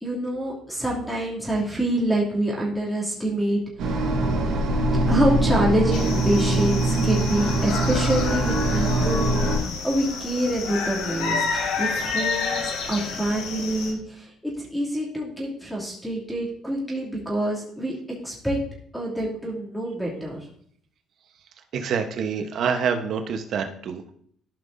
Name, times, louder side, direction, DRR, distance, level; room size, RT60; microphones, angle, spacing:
voice 1, 0.0-4.0 5.1-11.4 11.8-14.3 14.6-17.9 18.2-18.6 18.9-20.4, right 1 dB, ahead, -4 dB, 2.7 m, -26 dB
sound 1, 3.8-9.6, right 1 dB, 75° right, 2.5 m, -23 dB
sound 2, 5.9-13.9, left 4 dB, 85° left, 1.5 m, -30 dB
voice 2, 21.7-24.1, right 6 dB, 60° right, 6 dB, 1.0 m, -26 dB
13.5 x 5.5 x 2.7 m, 0.62 s
cardioid pair, 105°, 0 cm